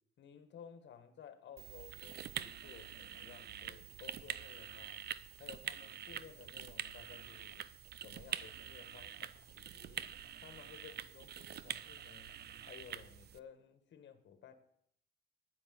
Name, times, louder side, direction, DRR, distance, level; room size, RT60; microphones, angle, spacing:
voice 1, 0.2-5.0 5.4-7.7 8.0-10.1 10.4-12.4 12.7-14.5, left 8 dB, 65° left, 1.8 m, -56 dB
sound 1, 1.6-13.4, right 10 dB, 55° right, 0.6 m, -46 dB
10.5 x 9.9 x 7.8 m
cardioid pair, 90°, 20 cm